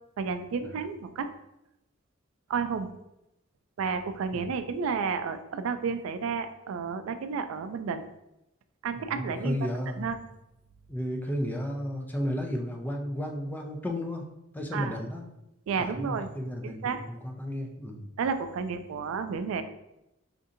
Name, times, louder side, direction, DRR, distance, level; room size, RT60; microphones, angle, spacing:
voice 1, 0.2-1.3 2.5-2.9 3.8-8.1 8.8-9.6 10.0-10.2 14.7-15.0 15.7-16.3 16.6-17.0 18.2-19.6, right 5 dB, 90° right, 10 dB, 0.3 m, -31 dB
voice 2, 9.0-10.1 10.9-14.3 14.5-15.2 15.8-18.1, equal, 10° left, 1 dB, 0.4 m, -33 dB
5.0 x 2.7 x 2.5 m, 0.87 s
head